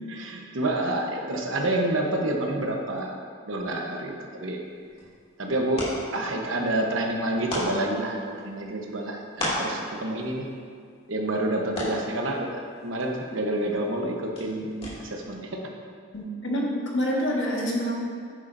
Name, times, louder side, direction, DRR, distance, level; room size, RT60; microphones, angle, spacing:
voice 1, 0.1-3.1 3.4-4.6 5.4-10.5 11.1-15.5, right 1 dB, 75° right, 1 dB, 1.1 m, -28 dB
sound 1, 4.6-15.3, left 1 dB, 30° left, 2.5 m, -38 dB
voice 2, 16.1-18.0, equal, 65° left, -3 dB, 1.6 m, -27 dB
10.0 x 9.5 x 2.7 m, 2.1 s
head